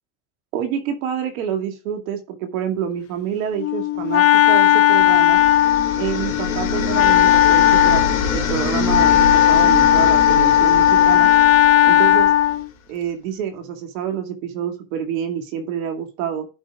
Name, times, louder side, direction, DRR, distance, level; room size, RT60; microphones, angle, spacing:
voice 1, 0.5-5.4 6.0-8.0 8.3-11.3 11.9-12.3 12.9-16.5, right 8 dB, 75° right, 5 dB, 2.4 m, -27 dB
Wind instrument woodwind instrument, 3.6-12.7, left 12 dB, 35° left, 0.7 m, -16 dB
sound 1, 4.6-12.6, left 5 dB, 80° left, 2.2 m, -26 dB
11.0 x 5.4 x 3.8 m, 0.31 s
hypercardioid pair, 80°, 41 cm